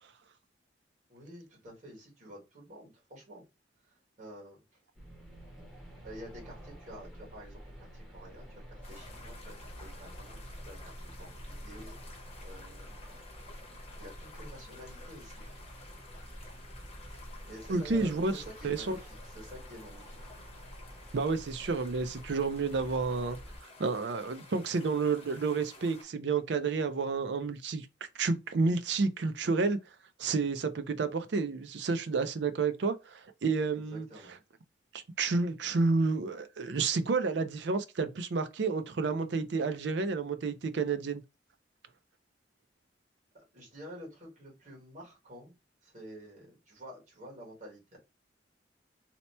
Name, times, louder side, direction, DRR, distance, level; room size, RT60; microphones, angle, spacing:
voice 1, 1.1-3.4 3.8-4.8 6.0-10.4 10.6-12.1 12.4-13.0 13.9-15.4 17.4-20.2 33.7-34.3 43.3-45.5 45.8-48.0, equal, 40° right, 1.5 m, -49 dB
sound 1, 4.9-23.6, equal, ahead, 0.8 m, -48 dB
sound 2, 8.8-26.0, left 3 dB, 35° left, 0.8 m, -53 dB
voice 2, 17.7-19.0 21.1-23.4 23.8-27.9 28.2-29.8 30.2-34.1 34.9-41.2, right 4 dB, 70° right, 0.5 m, -30 dB
2.8 x 2.2 x 4.1 m
head